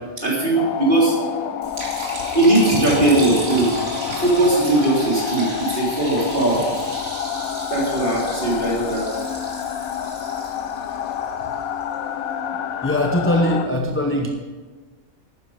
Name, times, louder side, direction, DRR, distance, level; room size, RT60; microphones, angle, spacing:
voice 1, 0.2-1.1 2.3-3.7 4.2-6.6 7.7-9.1, right 2 dB, 35° right, -5 dB, 3.8 m, -19 dB
sound 1, 0.5-13.7, left 9 dB, 75° left, 1.1 m, -28 dB
Liquid, 1.6-11.8, right 2 dB, 55° right, 2.8 m, -34 dB
voice 2, 12.8-14.3, left 1 dB, 10° left, 1 dB, 0.7 m, -20 dB
12.0 x 9.6 x 5.3 m, 1.4 s
omnidirectional pair, 1.5 m